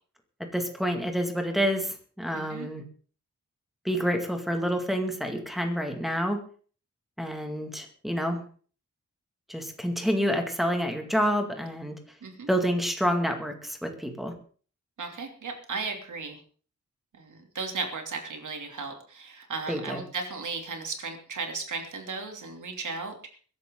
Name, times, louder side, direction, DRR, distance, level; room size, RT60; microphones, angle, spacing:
voice 1, 0.5-2.8 3.8-6.4 7.2-8.4 9.5-12.0 12.5-14.3 19.7-20.0, equal, ahead, 3 dB, 2.2 m, -28 dB
voice 2, 2.3-2.7 12.2-12.5 15.0-16.4 17.2-23.4, right 4 dB, 80° right, 4 dB, 3.0 m, -35 dB
22.0 x 11.5 x 3.8 m, 0.42 s
wide cardioid pair, 175°, 30 cm